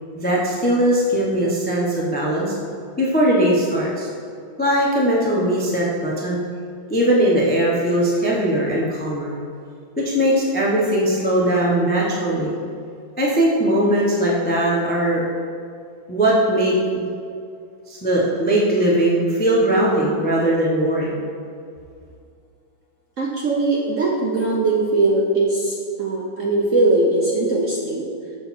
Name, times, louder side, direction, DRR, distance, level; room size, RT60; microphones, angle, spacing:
voice 1, 0.1-2.5 3.0-4.1 4.6-6.4 6.9-9.4 10.0-12.5 13.2-15.2 16.1-17.0 17.9-21.3, right 1 dB, 15° left, -4 dB, 0.4 m, -19 dB
voice 2, 23.2-28.1, right 2 dB, 60° right, -3 dB, 0.8 m, -20 dB
6.7 x 6.2 x 4.2 m, 2.3 s
omnidirectional pair, 2.2 m